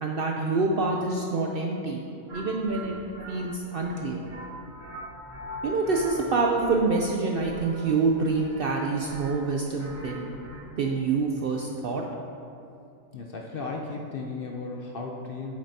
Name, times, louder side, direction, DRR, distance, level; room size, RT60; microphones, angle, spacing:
voice 1, 0.0-2.0 2.3-2.9 3.3-4.2 5.6-10.3 10.8-12.0, right 3 dB, 65° right, 1 dB, 0.6 m, -26 dB
sound 1, 2.3-10.6, equal, 25° right, 1.0 m, -42 dB
voice 2, 13.1-15.6, left 3 dB, 60° left, 0 dB, 0.6 m, -35 dB
8.4 x 7.5 x 2.7 m, 2.7 s
omnidirectional pair, 1.4 m